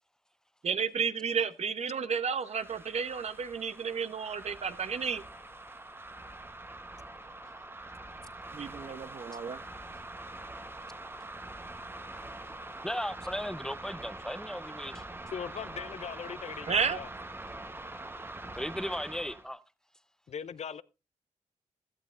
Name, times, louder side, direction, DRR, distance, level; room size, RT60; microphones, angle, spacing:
voice 1, 0.6-5.2 8.5-9.6 16.7-17.0, right 6 dB, 55° right, 0.9 m, -32 dB
sound 1, 2.4-19.5, right 2 dB, 15° right, 1.0 m, -44 dB
voice 2, 12.8-15.0 18.5-19.6, equal, 5° left, 0.7 m, -36 dB
voice 3, 15.3-17.1 20.3-20.8, left 7 dB, 55° left, 0.5 m, -39 dB
16.5 x 11.5 x 2.5 m
supercardioid pair, 55°, 13 cm